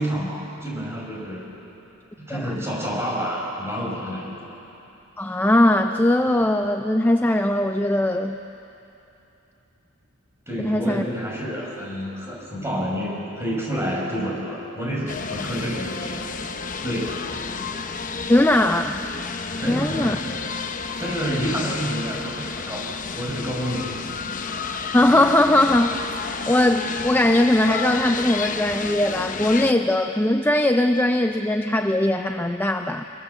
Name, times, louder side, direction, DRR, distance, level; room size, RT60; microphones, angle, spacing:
voice 1, 0.0-1.4 2.2-4.3 10.5-16.4 16.8-17.2 19.6-20.4 21.0-24.1, equal, 10° right, -4 dB, 5.9 m, -29 dB
voice 2, 5.2-8.4 10.6-11.0 18.3-19.0 19.7-20.2 24.9-26.0 26.5-33.0, left 1 dB, 10° left, 6 dB, 0.5 m, -20 dB
sound 1, 15.1-29.7, left 5 dB, 40° left, 0.9 m, -31 dB
27.0 x 23.0 x 7.0 m, 2.9 s
head